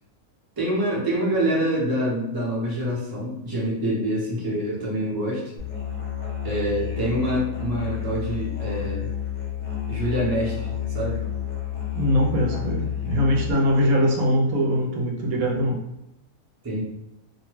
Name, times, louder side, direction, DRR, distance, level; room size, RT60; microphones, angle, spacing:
voice 1, 0.6-5.4 6.4-9.1 9.9-11.2 16.6-16.8, right 1 dB, 20° right, -6 dB, 0.7 m, -26 dB
Musical instrument, 5.6-13.5, left 10 dB, 50° left, 0.6 m, -30 dB
voice 2, 12.0-15.8, equal, 80° right, 0 dB, 1.0 m, -22 dB
2.7 x 2.2 x 3.1 m, 0.87 s
omnidirectional pair, 1.5 m